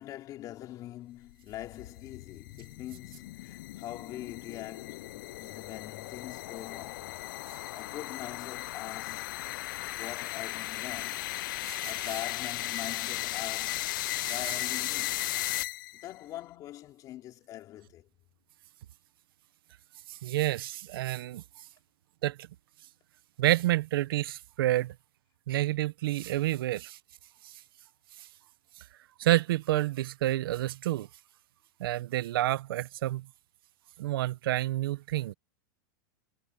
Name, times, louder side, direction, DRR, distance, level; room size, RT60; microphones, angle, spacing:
voice 1, 0.0-7.2 7.7-9.5 9.9-11.3 11.9-15.2 15.9-18.1 26.3-26.6, left 14 dB, 30° left, 3.5 m, -43 dB
sound 1, 1.3-16.1, left 17 dB, 65° left, 0.5 m, -36 dB
voice 2, 20.1-21.4 22.2-22.5 23.4-24.9 25.5-27.0 27.4-27.5 29.2-31.1 31.8-33.3 34.0-35.3, right 15 dB, 75° right, 0.8 m, -29 dB
supercardioid pair, 160°, 12 cm